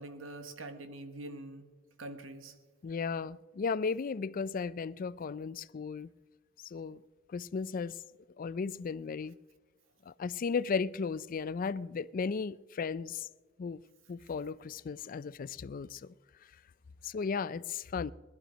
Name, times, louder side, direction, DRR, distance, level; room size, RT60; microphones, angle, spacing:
voice 1, 0.0-1.7 2.0-2.5, right 2 dB, 80° right, 1.5 m, -44 dB
voice 2, 2.8-6.1 6.6-7.0 7.3-8.0 8.4-9.4 10.1-13.3 13.6-13.8 14.1-16.1 17.0-18.1, left 5 dB, 45° left, 0.4 m, -35 dB
19.5 x 12.0 x 5.1 m
head